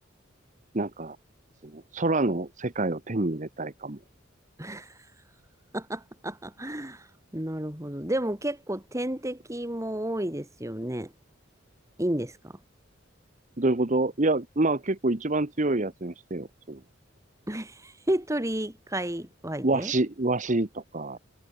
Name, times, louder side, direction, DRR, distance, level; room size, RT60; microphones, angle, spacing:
voice 1, 0.7-1.2 1.6-4.0 13.6-16.8 19.6-21.2, right 2 dB, 40° right, 1.2 m, -27 dB
voice 2, 4.6-4.9 5.7-7.1 7.3-11.1 12.0-12.6 17.5-19.9, right 1 dB, 15° right, 2.5 m, -31 dB
head